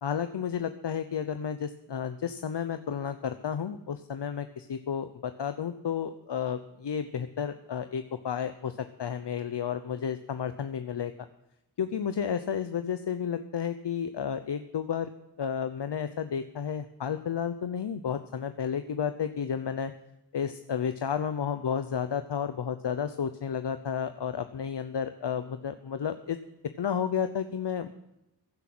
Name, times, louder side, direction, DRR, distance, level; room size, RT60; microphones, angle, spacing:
voice 1, 0.0-11.1 11.8-15.1 15.4-19.9 20.3-26.4 26.8-27.9, left 7 dB, 80° left, 10 dB, 0.8 m, -32 dB
16.0 x 11.0 x 6.1 m, 0.89 s
wide cardioid pair, 75°, 41 cm